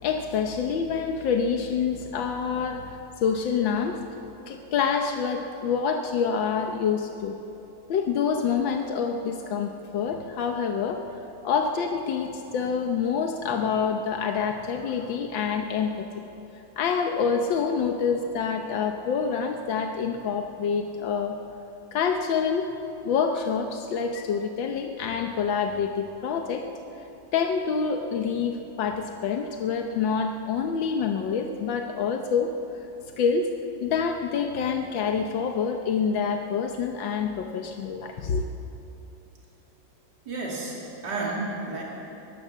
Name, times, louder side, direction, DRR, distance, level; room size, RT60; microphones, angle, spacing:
voice 1, 0.0-4.0 4.5-7.4 7.9-11.0 11.4-15.9 16.8-21.4 21.9-22.7 23.0-26.6 27.3-32.5 33.2-33.5 33.8-38.5, left 6 dB, 85° left, 4 dB, 1.7 m, -27 dB
voice 2, 40.2-41.8, right 2 dB, 65° right, -3 dB, 3.4 m, -31 dB
21.0 x 16.5 x 7.5 m, 2.9 s
omnidirectional pair, 2.0 m